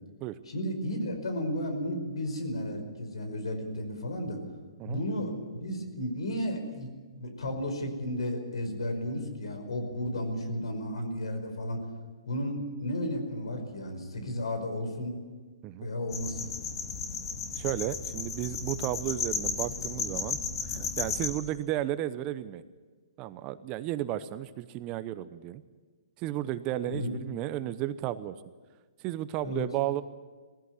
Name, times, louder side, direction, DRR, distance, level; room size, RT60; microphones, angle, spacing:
voice 1, 0.5-4.4 4.8-5.3 5.6-6.9 7.1-11.8 12.3-15.2 15.8-16.5 26.8-27.1 29.4-29.7, left 1 dB, 80° left, 6 dB, 5.1 m, -33 dB
sound 1, 16.1-21.3, left 5 dB, 60° left, 3.2 m, -34 dB
voice 2, 17.6-20.4 20.7-22.6 23.2-25.6 26.2-28.3 29.0-30.0, right 13 dB, 30° right, 13 dB, 0.9 m, -33 dB
19.5 x 15.5 x 9.6 m, 1.4 s
hypercardioid pair, 145°, 3 cm